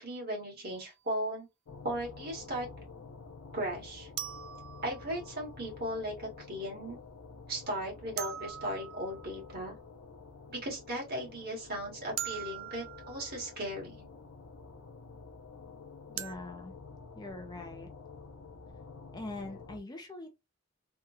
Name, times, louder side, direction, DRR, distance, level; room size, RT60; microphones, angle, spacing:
voice 1, 0.0-1.5 1.8-2.7 3.5-4.1 4.8-7.0 7.5-9.7 10.5-14.1, right 1 dB, 50° right, 1.8 m, -37 dB
sound 1, 0.7-0.9 4.2-5.5 8.2-9.5 12.2-13.4 16.2-16.4, right 12 dB, 85° right, 0.4 m, -41 dB
sound 2, 1.6-19.8, left 4 dB, 80° left, 0.6 m, -50 dB
voice 2, 16.1-16.7 17.2-17.9 19.1-20.3, left 2 dB, 20° left, 0.5 m, -42 dB
3.4 x 2.2 x 2.9 m
head